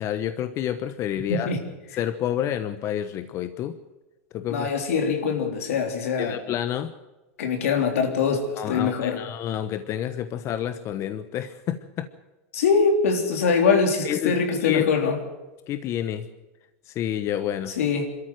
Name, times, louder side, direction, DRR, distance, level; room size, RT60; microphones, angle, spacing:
voice 1, 0.0-1.5 2.0-3.8 4.3-4.7 6.2-6.9 8.6-12.1 14.0-14.8 15.7-16.3 16.8-17.7, left 10 dB, 40° left, 10 dB, 1.1 m, -29 dB
voice 2, 4.5-6.3 7.4-9.2 12.5-15.2 17.8-18.1, left 5 dB, 85° left, 4 dB, 3.6 m, -23 dB
24.5 x 13.5 x 7.9 m, 1.1 s
supercardioid pair, 120°, 7 cm